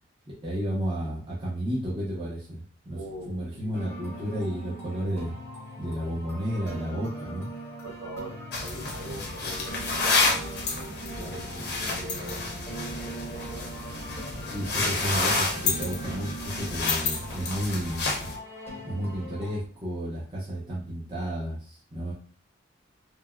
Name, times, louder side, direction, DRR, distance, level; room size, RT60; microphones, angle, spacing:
voice 1, 0.4-3.0 3.3-5.3 5.8-7.5 14.5-18.1 18.8-22.1, equal, 25° right, -6 dB, 0.7 m, -32 dB
voice 2, 2.9-3.8 7.8-10.3 11.2-12.5 12.8-13.7, right 1 dB, 70° right, -4 dB, 1.5 m, -42 dB
sound 1, 3.7-19.6, right 1 dB, 15° left, 0.8 m, -41 dB
sound 2, 8.5-18.4, left 3 dB, 55° left, 0.6 m, -30 dB
3.3 x 2.1 x 2.3 m, 0.42 s
head